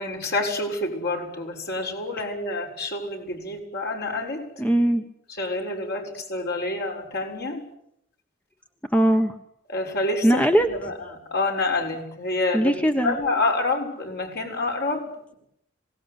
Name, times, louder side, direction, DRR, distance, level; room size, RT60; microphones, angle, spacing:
voice 1, 0.0-4.4 5.3-7.6 9.7-12.7 13.0-15.3, left 2 dB, 55° left, 1 dB, 6.7 m, -28 dB
voice 2, 4.6-5.0 8.9-9.3 10.2-10.7 12.5-13.1, right 1 dB, 5° left, 6 dB, 1.2 m, -20 dB
26.5 x 18.5 x 9.8 m, 0.77 s
head